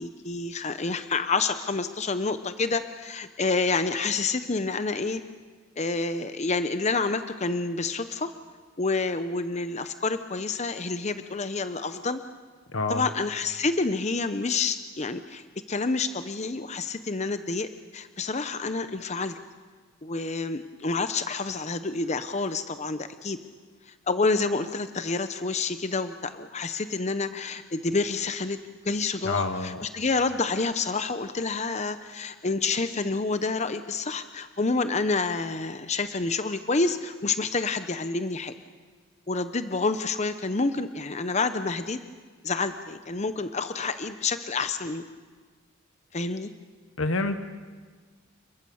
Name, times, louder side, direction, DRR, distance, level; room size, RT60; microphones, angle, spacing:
voice 1, 0.0-5.2 5.8-8.3 8.8-12.2 12.9-19.4 20.0-23.4 23.9-28.6 28.8-38.5 39.3-42.0 42.4-45.0 46.1-46.5, left 3 dB, 35° left, 10 dB, 0.8 m, -28 dB
voice 2, 12.7-13.1 29.2-29.9 47.0-47.4, left 3 dB, 85° left, 9 dB, 1.3 m, -27 dB
29.5 x 21.0 x 7.1 m, 1.5 s
head